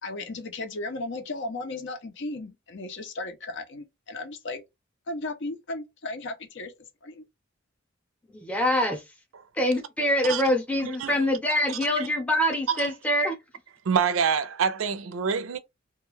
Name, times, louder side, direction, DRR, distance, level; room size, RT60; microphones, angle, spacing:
voice 1, 0.0-4.6 5.1-6.7 7.0-7.2, left 2 dB, 65° left, 0.7 m, -35 dB
voice 2, 8.3-9.0 9.5-13.4, left 1 dB, 5° left, 0.7 m, -25 dB
voice 3, 10.8-11.2 12.7-12.9 13.9-15.6, right 6 dB, 80° right, 0.4 m, -26 dB
2.4 x 2.2 x 3.1 m
head